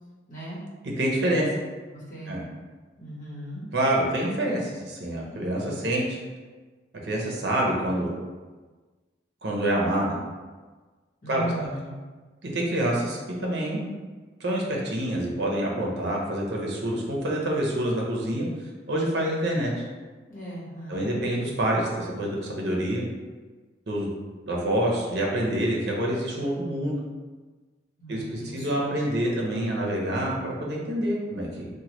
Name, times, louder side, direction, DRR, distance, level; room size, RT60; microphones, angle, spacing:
voice 1, 0.3-0.6 1.9-2.4 3.0-3.6 11.2-11.9 20.3-21.2 28.0-29.0, right 1 dB, 45° left, -8 dB, 1.1 m, -37 dB
voice 2, 1.0-1.5 2.3-2.4 3.7-6.2 7.0-8.1 9.4-10.2 11.3-11.7 12.4-13.9 14.4-18.5 18.9-19.7 20.9-23.0 23.9-24.1 24.5-27.0 28.1-31.7, right 1 dB, 65° right, -2 dB, 0.6 m, -27 dB
3.0 x 2.2 x 2.9 m, 1.3 s
head